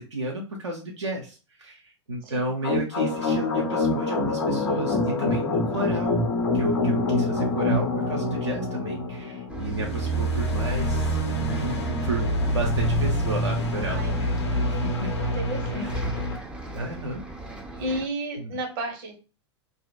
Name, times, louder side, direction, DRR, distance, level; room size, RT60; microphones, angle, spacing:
voice 1, 0.0-6.3 6.5-14.4 14.6-14.8 15.7-15.9 16.7-17.2 18.4-18.6, right 2 dB, 80° right, -1 dB, 0.5 m, -32 dB
voice 2, 2.2-2.5 13.9-14.1 14.5-14.8 15.1-16.2 17.8-19.2, right 1 dB, 50° right, 3 dB, 0.8 m, -33 dB
sound 1, 2.6-16.4, left 1 dB, 70° left, 0.6 m, -26 dB
Bus, 9.5-18.1, right 2 dB, 5° right, 0.4 m, -40 dB
2.7 x 2.1 x 2.3 m, 0.33 s
figure-of-eight pair, 90°, 15 cm